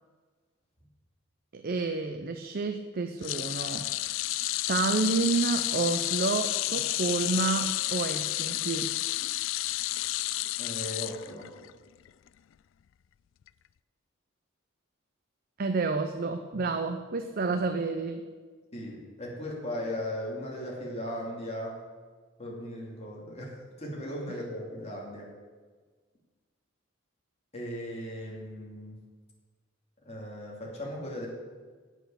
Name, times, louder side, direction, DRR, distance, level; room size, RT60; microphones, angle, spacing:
voice 1, 1.5-3.9 4.7-8.9 15.6-18.3, right 4 dB, 50° right, 7 dB, 0.6 m, -29 dB
sound 1, 3.2-11.7 12.1-12.3 13.5-13.6, left 17 dB, 70° left, 0.3 m, -31 dB
voice 2, 10.6-11.5 16.5-16.6 17.5-17.6 18.7-21.8 22.4-25.3 27.5-29.0 30.0-31.3, left 1 dB, 30° left, -3 dB, 2.7 m, -37 dB
9.1 x 8.2 x 6.9 m, 1.4 s
head